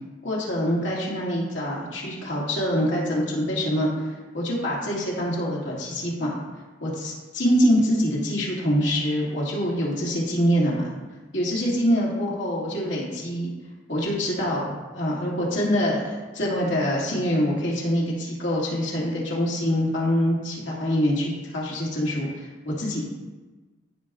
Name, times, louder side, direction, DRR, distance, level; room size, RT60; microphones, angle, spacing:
voice 1, 0.2-6.4 6.8-10.9 11.3-13.5 13.9-23.0, equal, 80° left, -4 dB, 2.5 m, -25 dB
15.0 x 5.3 x 2.5 m, 1.2 s
head